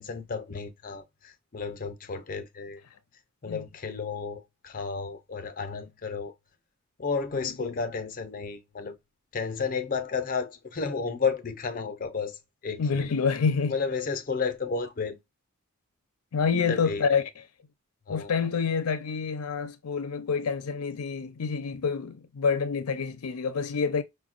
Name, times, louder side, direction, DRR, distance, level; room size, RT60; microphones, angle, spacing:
voice 1, 0.0-2.8 3.4-6.3 7.0-9.0 9.3-13.1 13.7-15.2 16.7-17.0 18.1-18.3, left 5 dB, 40° left, 0.6 m, -32 dB
voice 2, 12.8-13.7 16.3-17.3 18.1-24.0, left 5 dB, 85° left, 0.5 m, -27 dB
5.1 x 2.2 x 2.4 m
head